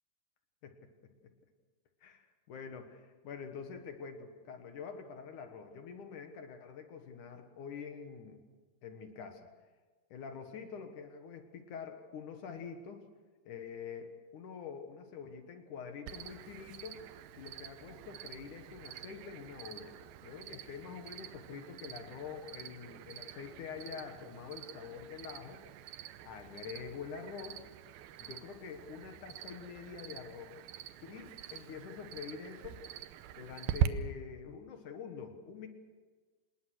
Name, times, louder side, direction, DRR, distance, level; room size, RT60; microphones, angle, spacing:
voice 1, 2.0-8.4 8.8-9.5 10.1-13.0 13.5-17.1 17.4-20.0 20.2-25.6 25.9-27.6 28.2-30.6 31.0-32.9 33.3-35.7, left 6 dB, 60° left, 6 dB, 2.7 m, -46 dB
Cricket, 16.1-33.9, right 12 dB, 80° right, 2.6 m, -43 dB
27.0 x 20.0 x 6.2 m, 1.4 s
omnidirectional pair, 4.4 m